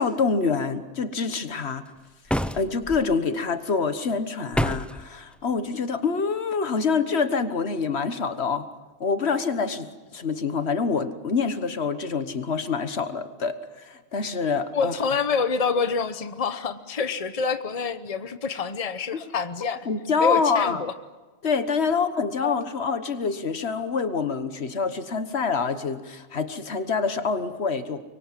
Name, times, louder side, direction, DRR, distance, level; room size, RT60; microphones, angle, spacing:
voice 1, 0.0-1.9 2.5-8.6 9.0-14.9 19.9-20.8 21.4-28.0, left 5 dB, 75° left, 10 dB, 1.6 m, -26 dB
sound 1, 2.3-3.0 4.5-5.0, equal, ahead, 0.5 m, -27 dB
voice 2, 14.7-19.9 20.2-20.9 22.4-22.6, left 5 dB, 35° left, 11 dB, 1.0 m, -27 dB
24.5 x 23.0 x 7.5 m, 1.2 s
omnidirectional pair, 1.1 m